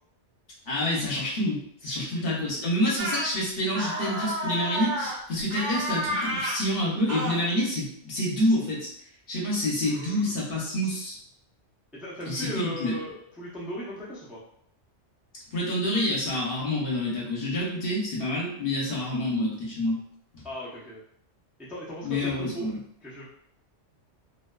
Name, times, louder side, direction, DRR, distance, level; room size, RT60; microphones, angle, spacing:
voice 1, 0.7-8.9 9.3-11.2 12.3-12.9 15.5-20.0 20.3-20.4 22.0-22.7, left 1 dB, 55° left, -5 dB, 0.9 m, -27 dB
sound 1, 3.0-3.3 3.7-5.2 5.5-6.6 7.1-7.4, right 1 dB, 75° right, 1.0 m, -30 dB
voice 2, 9.8-10.4 11.9-14.4 20.4-21.0 21.6-22.7 23.0-23.2, equal, ahead, -8 dB, 0.4 m, -38 dB
2.5 x 2.2 x 2.2 m, 0.67 s
omnidirectional pair, 1.2 m